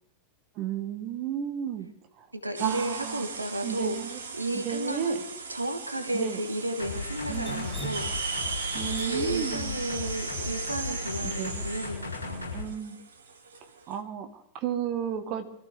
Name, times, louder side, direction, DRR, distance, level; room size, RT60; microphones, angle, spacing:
voice 1, 0.6-1.9 2.6-3.2 3.6-4.2 4.5-5.2 6.1-6.4 7.3-7.7 8.7-9.7 11.2-11.7 12.5-13.0 13.9-14.3 14.5-15.4, right 9 dB, 40° right, 7 dB, 1.4 m, -33 dB
voice 2, 2.4-5.2 5.5-8.3 8.8-12.5, right 1 dB, 85° right, 9 dB, 1.3 m, -33 dB
sound 1, 2.5-13.9, right 5 dB, 65° right, 1.5 m, -38 dB
sound 2, 6.8-12.6, left 4 dB, 75° left, 6.7 m, -36 dB
Drip, 7.3-11.5, right 2 dB, 5° right, 2.3 m, -44 dB
24.0 x 13.5 x 3.5 m, 0.75 s
figure-of-eight pair, 90°, 0 cm